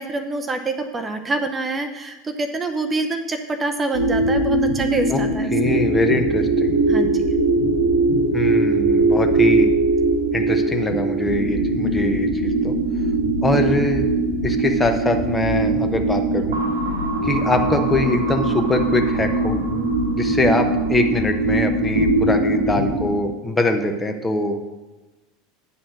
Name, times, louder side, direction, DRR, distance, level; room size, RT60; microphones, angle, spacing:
voice 1, 0.0-5.8 6.9-7.2, right 2 dB, 20° right, 7 dB, 0.7 m, -26 dB
sound 1, 3.9-23.0, right 2 dB, 80° right, 1.2 m, -21 dB
voice 2, 5.5-6.7 8.3-9.7 10.3-12.7 13.4-14.1 14.4-16.6 17.2-19.6 20.1-24.6, left 2 dB, 15° left, 5 dB, 0.9 m, -23 dB
9.3 x 4.2 x 6.4 m, 1.2 s
figure-of-eight pair, 75°, 0 cm